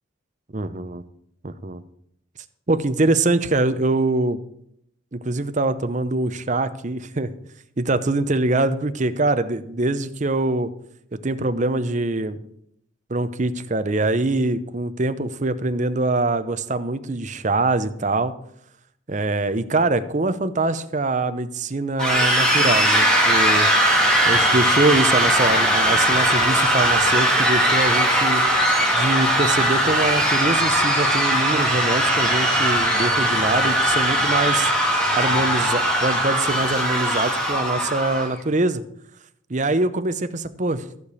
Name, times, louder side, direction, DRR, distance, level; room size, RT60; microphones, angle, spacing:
voice 1, 0.5-1.0 1.4-1.8 2.7-4.4 5.1-7.3 7.8-10.7 11.1-12.4 13.1-18.3 19.1-23.7 24.3-28.4 28.9-34.7 35.2-38.8 39.5-40.8, right 2 dB, 35° right, 11 dB, 0.7 m, -23 dB
sound 1, 22.0-38.3, equal, 5° left, 2.1 m, -19 dB
14.5 x 5.0 x 8.3 m, 0.74 s
head